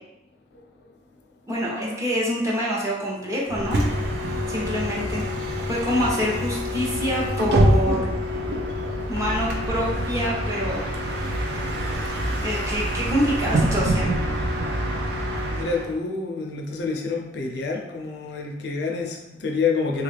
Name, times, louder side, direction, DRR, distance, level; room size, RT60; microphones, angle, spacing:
voice 1, 1.5-3.8 4.5-5.3 5.7-8.1 9.1-10.9 12.4-14.1, equal, 20° right, -5 dB, 0.7 m, -26 dB
Bus, 3.5-15.9, equal, 65° right, 0.5 m, -25 dB
voice 2, 15.5-20.0, left 4 dB, 65° left, 1 dB, 0.5 m, -28 dB
3.4 x 2.3 x 3.2 m, 0.93 s
head